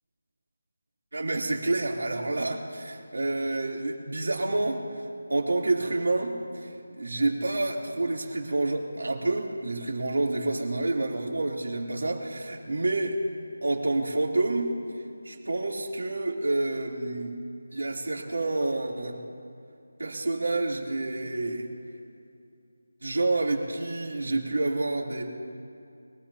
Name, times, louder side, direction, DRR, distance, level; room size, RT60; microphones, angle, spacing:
voice 1, 1.1-4.8 5.3-13.2 13.6-14.8 15.2-17.3 17.7-19.2 20.0-21.7 23.0-25.2, right 2 dB, 80° right, -1 dB, 3.4 m, -28 dB
24.5 x 19.0 x 2.9 m, 2.5 s
figure-of-eight pair, 180°, 0 cm